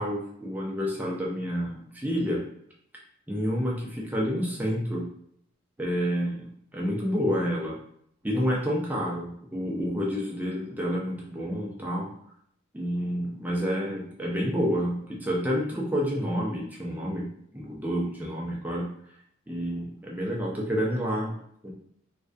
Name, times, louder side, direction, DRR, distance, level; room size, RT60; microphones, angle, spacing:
voice 1, 0.0-2.4 3.3-5.1 5.8-7.8 8.2-12.1 12.7-17.3 17.5-18.9 19.5-21.3 21.6-21.7, equal, 10° right, -4 dB, 0.4 m, -29 dB
2.3 x 2.2 x 2.5 m, 0.70 s
head